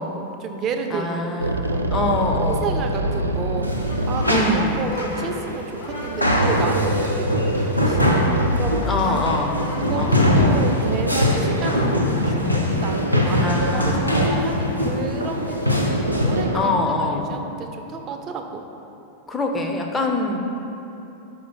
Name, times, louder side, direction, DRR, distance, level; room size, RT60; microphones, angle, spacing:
voice 1, 0.0-1.8 2.3-8.2 8.5-9.3 9.8-15.9 16.2-18.6, right 4 dB, 30° right, 4 dB, 0.5 m, -32 dB
voice 2, 0.9-2.9 4.3-4.9 8.9-10.3 13.3-14.6 16.5-17.4 19.3-20.5, left 2 dB, 15° left, 2 dB, 0.6 m, -25 dB
sound 1, 1.4-4.7 5.9-9.4 10.1-11.7 12.4-14.3 14.6-14.7 15.0-16.7, right 1 dB, 80° right, 0.3 m, -26 dB
sound 2, 3.6-16.4, left 1 dB, 90° left, 0.5 m, -22 dB
sound 3, 3.9-10.4, left 2 dB, 55° left, 1.1 m, -35 dB
5.8 x 4.9 x 4.0 m, 3.0 s
figure-of-eight pair, 90°, 0 cm